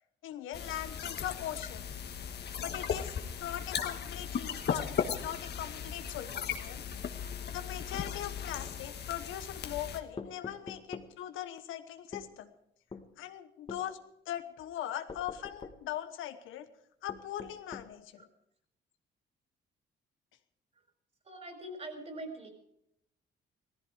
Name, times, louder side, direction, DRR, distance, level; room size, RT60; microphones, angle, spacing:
voice 1, 0.2-1.8 2.6-6.8 7.5-12.5 13.2-14.0 14.3-16.7 17.0-18.3, left 11 dB, 85° left, 9 dB, 1.2 m, -40 dB
sound 1, 0.5-10.0, left 7 dB, 55° left, 1.4 m, -37 dB
sound 2, 10.2-11.1 12.1-12.3 12.9-13.1 13.7-13.9 15.1-15.8 17.1-17.9, left 4 dB, 30° left, 1.7 m, -44 dB
voice 2, 21.2-22.5, right 1 dB, 35° right, 5 dB, 4.5 m, -43 dB
16.5 x 14.5 x 4.9 m, 0.76 s
cardioid pair, 90°, 20 cm